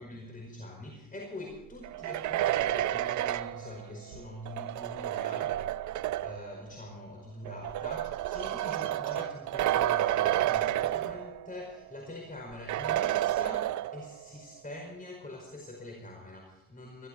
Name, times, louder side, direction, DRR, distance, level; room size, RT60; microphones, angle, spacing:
voice 1, 0.0-17.1, left 1 dB, 25° left, 1 dB, 5.0 m, -44 dB
sound 1, 1.8-6.5 7.5-11.6 11.9-12.0 12.7-14.2, right 13 dB, 75° right, 0.7 m, -30 dB
22.5 x 14.5 x 4.2 m, 0.93 s
cardioid pair, 90°, 30 cm